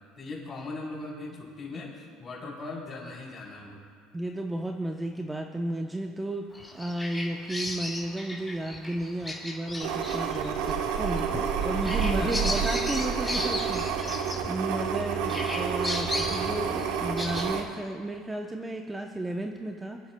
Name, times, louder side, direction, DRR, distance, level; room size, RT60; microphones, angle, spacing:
voice 1, 0.0-3.8 12.2-12.5 15.3-15.4, left 3 dB, 30° left, -3 dB, 3.7 m, -39 dB
voice 2, 4.1-6.5 6.7-20.0, right 1 dB, 10° right, 3 dB, 0.7 m, -33 dB
Bird vocalization bird call bird song, 6.5-15.0 15.3-17.4, left 1 dB, 10° left, 2.9 m, -35 dB
sound 1, 9.8-17.6, right 7 dB, 80° right, 1.1 m, -29 dB
26.5 x 10.0 x 2.2 m, 2.1 s
supercardioid pair, 105°, 0 cm